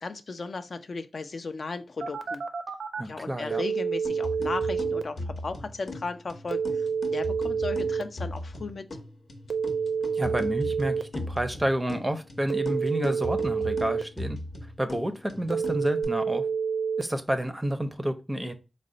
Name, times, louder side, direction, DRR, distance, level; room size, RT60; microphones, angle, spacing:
voice 1, 0.0-2.4 3.0-8.8, left 4 dB, 55° left, 0.3 m, -36 dB
Telephone, 2.0-3.0 3.5-5.0 6.5-8.0 9.5-11.0 12.5-14.0 15.5-17.0, right 6 dB, 70° right, 0.4 m, -28 dB
voice 2, 3.0-3.6 10.1-14.4 14.8-16.4 17.0-18.5, right 1 dB, 10° right, 0.5 m, -29 dB
sound 1, 4.0-16.0, left 2 dB, 70° left, 0.8 m, -39 dB
4.0 x 2.0 x 3.7 m
wide cardioid pair, 125°, 0 cm